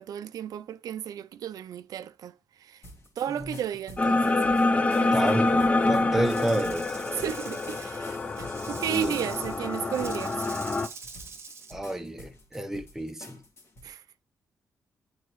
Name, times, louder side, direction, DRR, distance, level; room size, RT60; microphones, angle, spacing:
voice 1, 0.0-2.3 2.6-2.8 3.2-4.4 5.0-5.1 7.2-10.4 13.8-14.0, right 10 dB, 75° right, 0.4 m, -34 dB
sound 1, 2.8-13.9, left 1 dB, 40° left, 1.7 m, -49 dB
sound 2, 4.0-10.9, left 2 dB, 20° left, 0.5 m, -26 dB
voice 2, 5.1-6.9 8.7-9.2 11.7-13.4, right 1 dB, 5° right, 0.8 m, -29 dB
Rattle / Rattle (instrument), 6.2-11.8, right 5 dB, 40° right, 1.1 m, -45 dB
8.5 x 4.0 x 3.0 m
cardioid pair, 125°, 6 cm